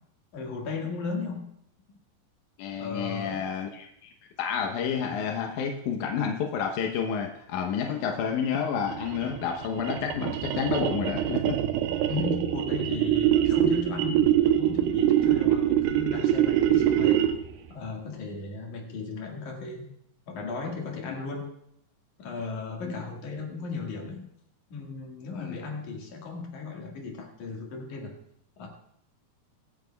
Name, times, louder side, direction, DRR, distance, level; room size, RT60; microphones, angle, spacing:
voice 1, 0.3-1.5 1.9-2.0 2.8-3.5 12.1-17.3 17.7-19.9 20.3-21.5 22.2-24.3 24.7-28.2 28.6-28.7, left 4 dB, 55° left, 0 dB, 2.9 m, -36 dB
voice 2, 2.6-4.1 4.4-11.6 21.1-21.2 22.8-23.0 25.4-25.6, left 7 dB, 75° left, 3 dB, 1.8 m, -30 dB
sound 1, 8.8-17.5, right 11 dB, 85° right, 2.7 m, -24 dB
23.0 x 9.2 x 2.3 m, 0.74 s
omnidirectional pair, 4.7 m